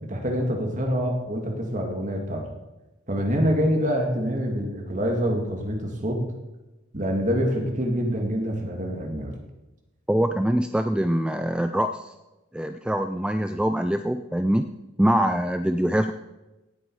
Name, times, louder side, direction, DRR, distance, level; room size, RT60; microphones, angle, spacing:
voice 1, 0.0-2.5 3.1-6.2 6.9-9.3, equal, 40° right, 2 dB, 2.3 m, -26 dB
voice 2, 10.1-12.1 12.5-14.6 15.0-16.1, right 1 dB, 5° right, 8 dB, 0.3 m, -24 dB
17.5 x 8.2 x 4.8 m, 1.0 s
head